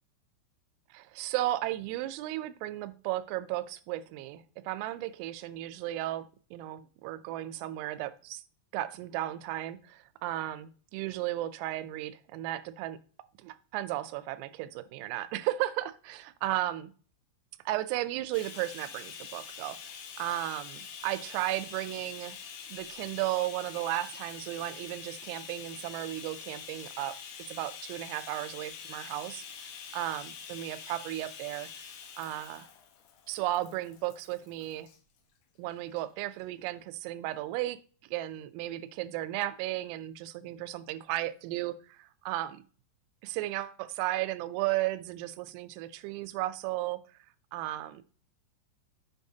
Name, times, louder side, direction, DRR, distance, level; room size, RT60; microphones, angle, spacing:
voice 1, 0.9-6.3 6.5-8.4 8.7-13.0 13.4-16.9 17.7-22.4 22.7-27.2 27.5-29.4 29.9-31.7 32.2-32.7 33.3-34.9 35.6-37.8 38.1-42.6 43.2-47.0 47.5-48.0, right 15 dB, 85° right, 3.2 m, -34 dB
Bathtub (filling or washing), 18.3-35.0 35.9-36.0 36.4-36.5, left 7 dB, 80° left, 3.5 m, -46 dB
7.1 x 7.0 x 2.7 m
omnidirectional pair, 5.9 m